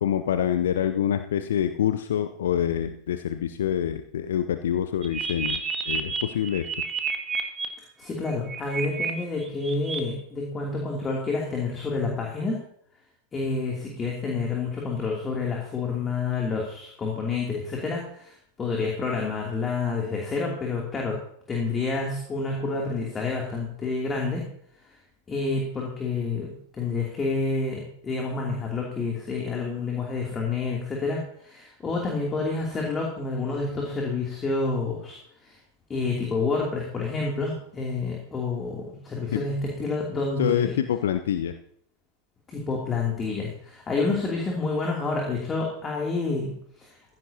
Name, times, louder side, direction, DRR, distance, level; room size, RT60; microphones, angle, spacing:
voice 1, 0.0-5.6 5.9-6.7 39.3-39.4 40.4-41.5, left 10 dB, 60° left, 9 dB, 0.6 m, -26 dB
sound 1, 5.0-7.6 8.3-9.1 9.4-10.0, right 5 dB, 20° right, 1.7 m, -30 dB
voice 2, 8.0-12.6 13.3-21.2 21.5-24.4 25.3-35.6 35.9-40.8 42.5-46.9, left 3 dB, 20° left, -1 dB, 2.9 m, -29 dB
15.5 x 15.0 x 2.9 m, 0.66 s
figure-of-eight pair, 90°, 0 cm